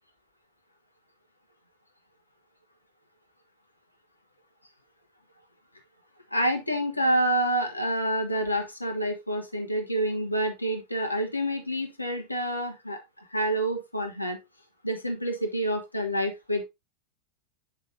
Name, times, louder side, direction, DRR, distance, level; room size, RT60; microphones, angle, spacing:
voice 1, 6.3-14.4 14.8-16.6, right 1 dB, 85° left, 4 dB, 1.3 m, -28 dB
8.1 x 5.4 x 2.7 m, 0.21 s
figure-of-eight pair, 90°, 0 cm